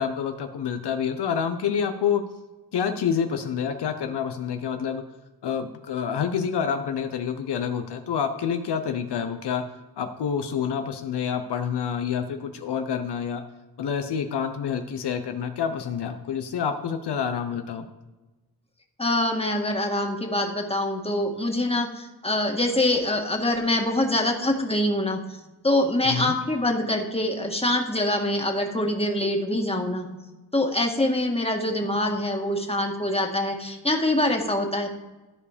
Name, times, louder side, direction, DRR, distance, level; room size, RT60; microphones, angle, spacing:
voice 1, 0.0-2.2 2.7-5.0 5.4-9.6 10.0-13.4 13.8-17.9 26.0-26.3, left 7 dB, 80° left, 7 dB, 0.8 m, -28 dB
voice 2, 19.0-25.2 25.6-30.1 30.5-34.9, left 1 dB, 15° left, 2 dB, 1.9 m, -24 dB
13.5 x 4.8 x 5.1 m, 1.2 s
cardioid pair, 50°, 40 cm